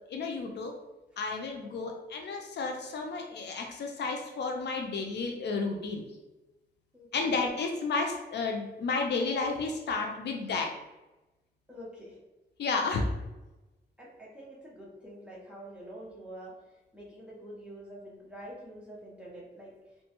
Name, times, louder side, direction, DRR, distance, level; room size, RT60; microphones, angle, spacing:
voice 1, 0.1-0.7 1.2-6.0 7.1-10.7 12.6-13.1, left 4 dB, 70° left, 3 dB, 0.4 m, -32 dB
voice 2, 6.9-7.4 11.7-12.2 14.0-16.5 16.9-19.7, right 1 dB, 5° right, -5 dB, 0.9 m, -46 dB
2.9 x 2.2 x 2.9 m, 1.1 s
wide cardioid pair, 130°, 18 cm